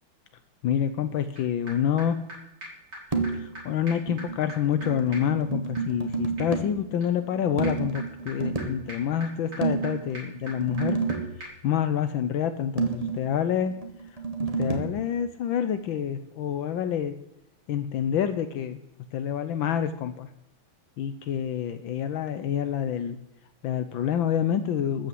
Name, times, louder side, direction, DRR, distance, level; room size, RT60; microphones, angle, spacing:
voice 1, 0.6-2.2 3.3-11.0 11.4-13.8 14.6-17.2 17.7-18.8 19.1-20.3 21.0-23.2 23.6-25.1, left 9 dB, 75° left, 10 dB, 1.5 m, -27 dB
sound 1, 1.4-1.5 1.7-1.8 2.0-2.1 2.3-2.4 2.6-2.7 2.9-3.0 3.2-3.3 3.5-3.6 3.9-11.1 11.4-11.5, right 1 dB, 55° right, 5.8 m, -44 dB
sound 2, 3.1-3.6 3.9-6.8 7.6-8.8 9.6-11.4 12.8-15.0, right 4 dB, 20° right, 1.5 m, -30 dB
14.0 x 8.9 x 7.8 m, 0.86 s
omnidirectional pair, 2.2 m